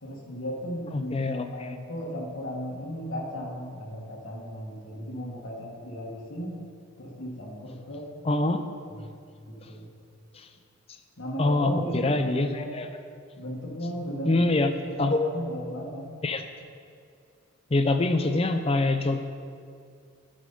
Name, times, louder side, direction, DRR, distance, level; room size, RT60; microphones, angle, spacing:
voice 1, 0.0-6.6 7.0-8.1 8.9-9.1 9.5-9.9 11.2-12.2 12.5-12.7 13.4-14.5 14.8-16.1, equal, 65° left, -3 dB, 1.4 m, -35 dB
voice 2, 0.9-1.8 8.2-8.6 11.4-12.9 14.3-14.7 15.0-15.2 16.2-16.4 17.7-19.2, left 2 dB, 30° left, 8 dB, 0.5 m, -25 dB
11.0 x 5.1 x 5.5 m, 2.3 s
head